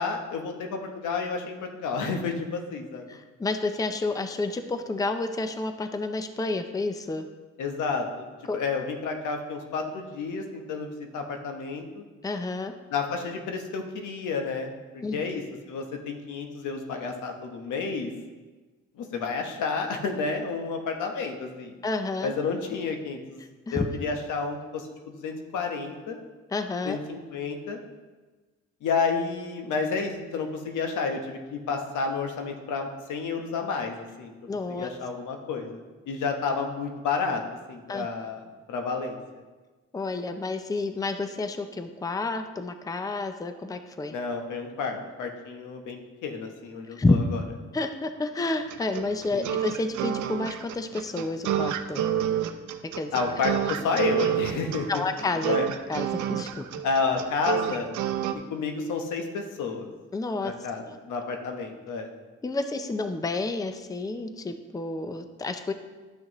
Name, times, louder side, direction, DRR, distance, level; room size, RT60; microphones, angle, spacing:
voice 1, 0.0-3.2 7.6-8.3 8.5-12.0 12.9-15.4 15.7-18.1 19.0-21.7 22.2-23.4 23.7-26.2 26.8-27.8 28.8-34.3 34.8-37.4 37.7-39.2 44.1-47.2 49.3-49.5 53.1-54.9 55.5-55.7 56.8-57.9 58.5-59.9 60.4-62.1, left 4 dB, 80° left, 4 dB, 1.1 m, -30 dB
voice 2, 3.1-7.2 8.5-8.6 12.2-12.7 15.0-15.2 21.8-22.3 23.7-23.9 26.5-27.0 34.5-34.9 37.9-38.1 39.9-44.1 47.0-47.2 47.7-52.1 53.0-53.1 53.6-53.7 54.9-55.6 55.9-56.8 60.1-60.5 60.9-61.0 62.4-65.7, left 2 dB, 10° left, 8 dB, 0.5 m, -30 dB
sound 1, 48.7-58.3, right 10 dB, 75° right, 0.6 m, -29 dB
11.5 x 6.2 x 3.1 m, 1.3 s
cardioid pair, 90°, 30 cm